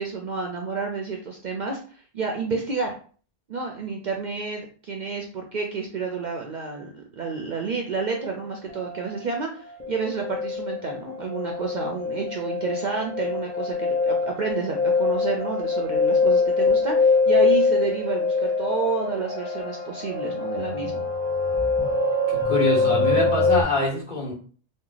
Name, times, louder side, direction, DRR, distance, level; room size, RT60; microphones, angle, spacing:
voice 1, 0.0-1.8 2.1-2.9 3.5-21.0, right 4 dB, 55° right, 1 dB, 0.6 m, -30 dB
sound 1, 8.1-8.2 8.7-9.3 9.6-23.6, left 3 dB, 10° left, 0.7 m, -24 dB
voice 2, 22.3-24.3, left 2 dB, 45° left, -5 dB, 1.4 m, -25 dB
3.0 x 2.2 x 3.8 m, 0.42 s
omnidirectional pair, 1.1 m